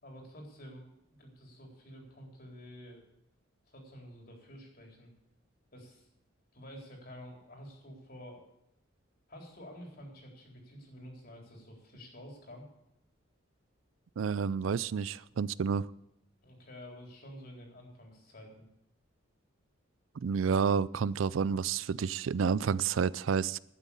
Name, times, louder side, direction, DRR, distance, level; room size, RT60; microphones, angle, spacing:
voice 1, 0.0-3.0 3.7-5.1 5.7-6.1 6.5-8.5 9.3-12.7 16.4-18.7, equal, 50° left, 3.8 m, -50 dB
voice 2, 14.2-15.9 20.2-23.6, right 6 dB, 85° right, 0.4 m, -30 dB
12.0 x 9.3 x 8.4 m
head